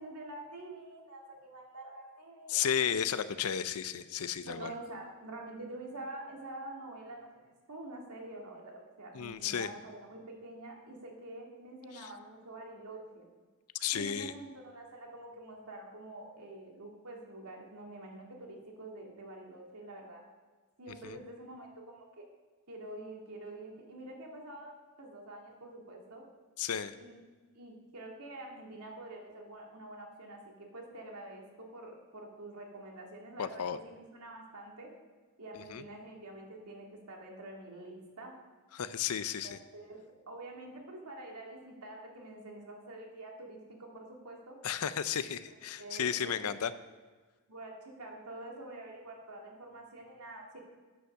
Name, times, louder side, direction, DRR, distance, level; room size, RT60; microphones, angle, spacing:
voice 1, 0.0-2.7 4.4-13.3 13.9-20.2 20.8-22.2 22.7-26.2 27.0-27.2 27.5-34.9 35.4-38.4 39.4-44.6 45.8-46.7 47.5-50.6, right 2 dB, 80° right, 0 dB, 2.2 m, -47 dB
voice 2, 2.5-4.7 9.1-9.7 11.9-12.1 13.8-14.3 21.0-21.2 26.6-26.9 33.4-33.8 35.7-35.8 38.7-39.6 44.6-46.7, left 8 dB, 75° left, 13 dB, 0.5 m, -33 dB
9.8 x 5.6 x 6.6 m, 1.4 s
head